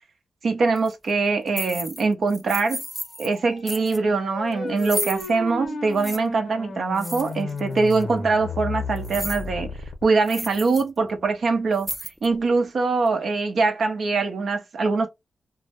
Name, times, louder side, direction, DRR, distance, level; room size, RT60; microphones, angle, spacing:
voice 1, 0.4-2.8 3.2-9.7 10.0-11.9 12.2-15.1, right 4 dB, 65° right, 0.6 m, -23 dB
sound 1, 0.8-0.9 1.5-2.0 2.3-3.3 3.7-4.0 4.8-5.3 6.0-6.2 7.0-7.6 7.9-8.0 9.0-9.5 9.8-9.9 10.2-10.8 11.2-11.3 11.7-12.4, equal, ahead, 0.4 m, -33 dB
sound 2, 3.1-10.0, left 3 dB, 60° left, 0.7 m, -34 dB
2.1 x 2.0 x 2.8 m
supercardioid pair, 50°, 0 cm